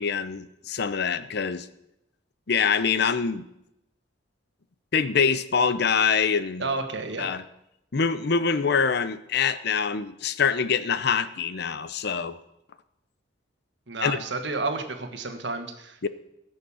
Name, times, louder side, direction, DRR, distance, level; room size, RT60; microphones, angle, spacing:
voice 1, 0.0-1.7 2.5-3.4 4.9-6.7 7.2-7.4 7.9-12.4 14.0-14.2 16.0-16.1, left 6 dB, 55° left, 13 dB, 0.7 m, -25 dB
voice 2, 6.6-7.3 13.9-16.1, right 3 dB, 65° right, 6 dB, 1.5 m, -31 dB
16.0 x 6.5 x 7.1 m, 0.85 s
head